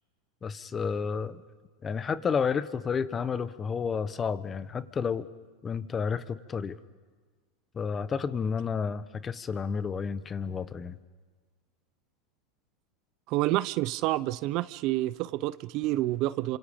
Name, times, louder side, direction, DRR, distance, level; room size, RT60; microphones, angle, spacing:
voice 1, 0.4-1.4 1.8-5.3 5.6-6.8 7.7-11.0, left 6 dB, 25° left, 14 dB, 1.1 m, -31 dB
voice 2, 13.3-16.6, right 17 dB, 50° right, 17 dB, 0.7 m, -28 dB
30.0 x 26.5 x 5.3 m, 1.5 s
supercardioid pair, 120°, 0 cm